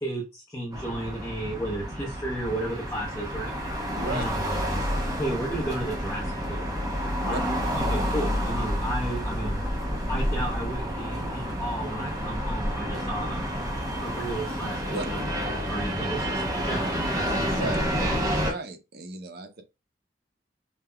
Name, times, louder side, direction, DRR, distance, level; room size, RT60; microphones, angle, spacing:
voice 1, 0.0-3.5 4.1-4.4 5.2-6.6 7.2-9.6 10.1-13.4 14.0-15.2 15.7-17.8, right 1 dB, 15° left, 0.7 m, -33 dB
sound 1, 0.7-18.5, equal, 20° right, 0.7 m, -29 dB
voice 2, 3.9-4.2 7.2-7.4 14.9-15.1 17.5-17.8 18.4-19.6, right 2 dB, 55° right, 0.6 m, -35 dB
5.3 x 2.2 x 2.2 m
head